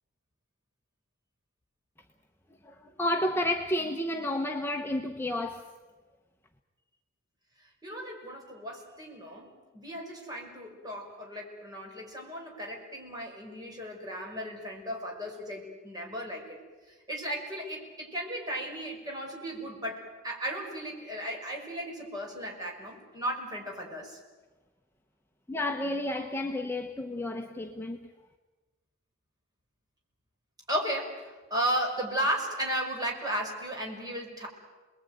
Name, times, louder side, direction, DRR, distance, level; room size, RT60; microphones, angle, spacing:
voice 1, 2.6-5.7 25.5-28.1, left 1 dB, 10° left, 1.0 m, -31 dB
voice 2, 7.6-16.6 16.9-24.2 30.7-34.5, equal, 20° right, 5.8 m, -35 dB
30.0 x 21.0 x 9.3 m
head